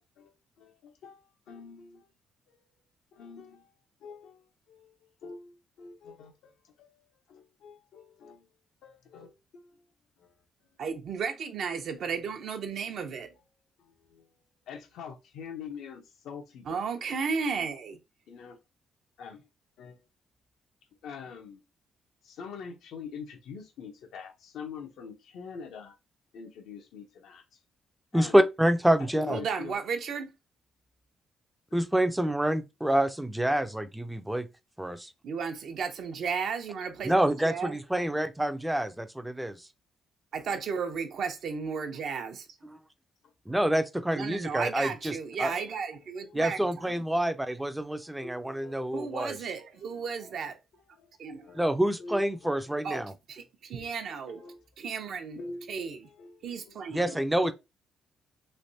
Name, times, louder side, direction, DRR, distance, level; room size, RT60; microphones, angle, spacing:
voice 1, 0.2-2.1 3.1-3.7 4.0-8.5 8.8-9.8 10.2-10.3 12.9-13.0 13.8-14.3 14.7-16.9 18.3-18.6 19.2-19.5 19.8-20.0 21.0-21.6 22.2-26.0 26.3-27.6 28.1-28.5 29.0-29.8 37.9-38.0 43.7-43.8 44.4-44.5 45.0-45.1 45.5-45.7 46.2-46.5 47.7-48.8 49.9-50.0 50.4-50.5 51.0-51.1 51.4-51.6 52.0-52.7 53.8-53.9 54.3-54.6 55.4-55.8 56.0-56.8 57.1-57.5, left 5 dB, 80° left, 0.8 m, -45 dB
voice 2, 10.8-13.3 16.7-18.0 29.3-30.3 35.2-37.8 40.3-42.5 44.1-47.0 48.9-50.6 51.2-51.5 52.8-55.4 55.7-56.1 56.4-57.2, right 5 dB, 65° right, 0.7 m, -34 dB
voice 3, 28.1-29.4 31.7-34.5 34.8-35.1 37.0-39.6 43.5-45.5 46.3-49.3 51.6-53.1 56.9-57.5, right 1 dB, 5° right, 0.4 m, -27 dB
3.3 x 3.0 x 2.7 m
cardioid pair, 90°, 0 cm